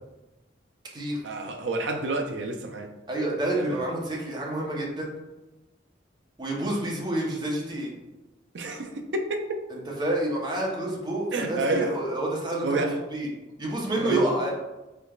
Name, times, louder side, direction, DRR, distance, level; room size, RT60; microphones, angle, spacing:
voice 1, 1.2-2.9 3.5-3.9 8.5-9.6 11.3-12.0 12.6-13.0 13.9-14.2, right 2 dB, 70° right, 0.5 m, -29 dB
voice 2, 3.1-5.1 6.4-7.9 9.7-12.8 13.1-13.3 13.6-14.5, right 1 dB, 25° right, 0.8 m, -28 dB
3.9 x 3.3 x 2.4 m
head